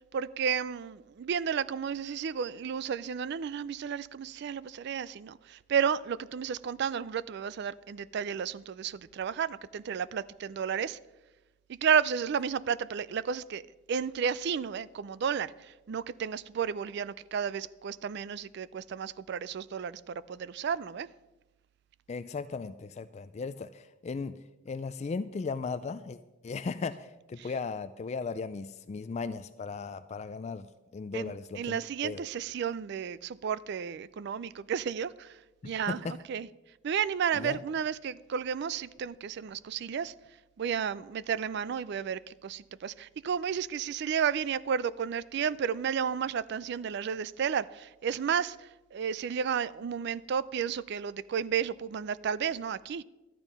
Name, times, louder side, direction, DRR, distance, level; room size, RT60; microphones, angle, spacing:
voice 1, 0.0-11.0 11.7-13.6 13.9-21.1 27.4-27.5 31.1-36.5 36.8-40.1 40.6-53.0, right 7 dB, 60° right, 0.4 m, -32 dB
voice 2, 22.1-24.4 24.7-26.2 26.4-30.7 30.9-32.2 35.6-36.2 37.4-37.6, left 4 dB, 35° left, 0.3 m, -37 dB
12.5 x 9.0 x 5.4 m
head